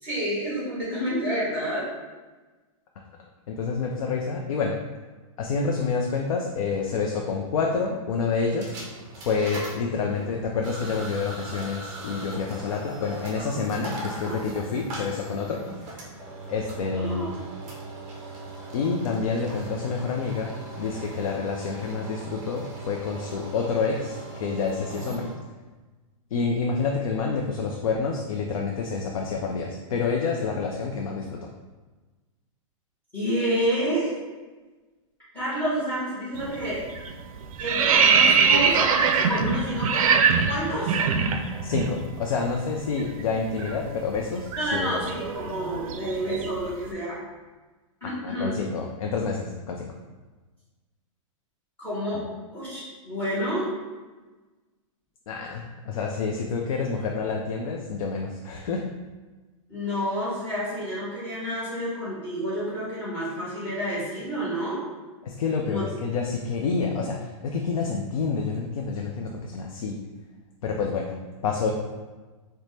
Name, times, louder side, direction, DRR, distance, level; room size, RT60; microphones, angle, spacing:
voice 1, 0.0-1.8 14.1-14.4 16.9-17.3 33.1-34.1 35.3-36.8 37.6-40.1 40.5-41.0 44.5-47.2 48.0-48.6 51.8-52.2 52.5-53.7 59.7-64.8 65.6-65.8, equal, 10° left, -9 dB, 1.0 m, -29 dB
voice 2, 3.5-4.8 5.4-8.8 9.2-15.6 16.5-17.3 18.7-20.5 20.8-25.3 26.3-31.4 41.6-45.0 48.2-49.9 55.3-58.9 65.2-70.0 70.6-71.2 71.4-71.7, left 5 dB, 75° left, 1 dB, 0.4 m, -28 dB
sound 1, 8.4-25.3, right 2 dB, 20° right, 0.5 m, -39 dB
sound 2, 36.3-36.6 36.9-41.9 42.2-42.4 42.7-46.7, right 6 dB, 80° right, 0.4 m, -23 dB
4.1 x 2.1 x 3.1 m, 1.3 s
supercardioid pair, 175°, 18 cm